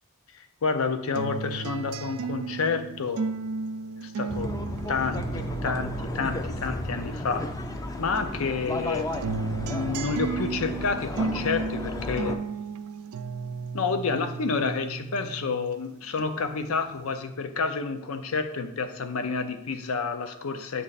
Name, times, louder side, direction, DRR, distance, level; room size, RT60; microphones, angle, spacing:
voice 1, 0.3-3.3 4.0-4.5 4.9-7.5 8.0-9.3 9.6-12.4 13.7-20.8, left 4 dB, 85° left, 9 dB, 0.6 m, -29 dB
sound 1, 1.1-7.8 8.2-15.8 16.2-17.1, right 4 dB, 85° right, 0.3 m, -35 dB
sound 2, 4.3-12.4, left 1 dB, 15° left, 0.3 m, -34 dB
7.5 x 3.2 x 4.0 m, 0.80 s
head